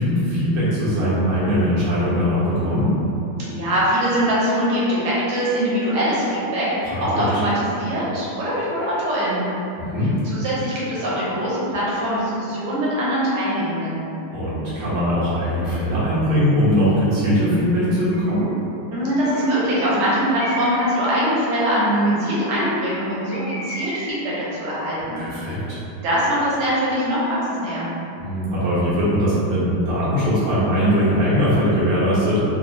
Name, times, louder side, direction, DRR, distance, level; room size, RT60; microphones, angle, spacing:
voice 1, 0.0-2.9 6.8-7.3 9.8-10.1 14.3-18.5 25.2-25.8 28.2-32.4, equal, 85° right, -10 dB, 2.0 m, -20 dB
voice 2, 3.5-9.5 10.3-14.0 18.9-25.2 26.0-27.9, equal, 60° right, -8 dB, 1.5 m, -22 dB
Bird, 18.0-18.4 19.2-19.7 20.4-21.0 23.3-24.3, left 1 dB, 75° left, 0.7 m, -34 dB
4.2 x 2.6 x 2.7 m, 2.9 s
omnidirectional pair, 2.3 m